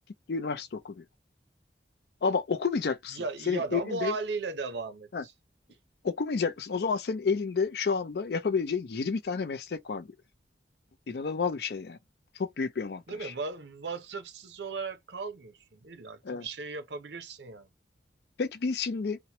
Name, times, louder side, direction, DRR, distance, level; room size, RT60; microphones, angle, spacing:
voice 1, 0.3-1.0 2.2-3.2 3.5-4.1 5.1-5.2 6.0-10.1 11.1-12.0 12.4-13.3 16.3-16.5 18.4-19.2, left 5 dB, 65° left, 0.4 m, -30 dB
voice 2, 3.1-5.3 13.1-17.7, right 4 dB, 75° right, 0.6 m, -36 dB
2.9 x 2.1 x 2.8 m
head